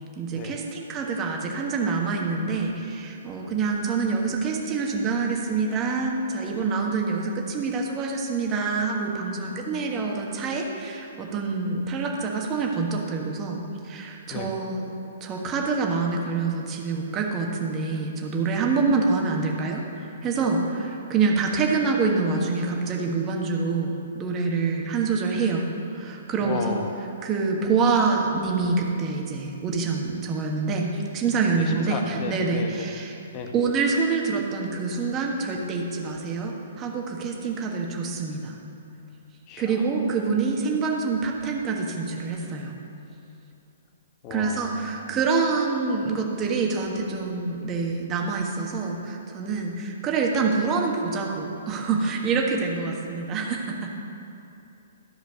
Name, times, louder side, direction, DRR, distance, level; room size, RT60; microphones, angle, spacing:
voice 1, 0.2-14.9 15.2-26.8 27.2-33.2 33.5-38.5 39.6-42.8 44.3-53.9, right 4 dB, 25° right, 1 dB, 1.5 m, -26 dB
voice 2, 26.4-26.9 31.5-32.9 33.3-33.5 39.5-39.8 44.2-45.2, left 5 dB, 30° left, 3 dB, 1.2 m, -34 dB
14.0 x 5.1 x 6.5 m, 2.8 s
figure-of-eight pair, 120°, 0 cm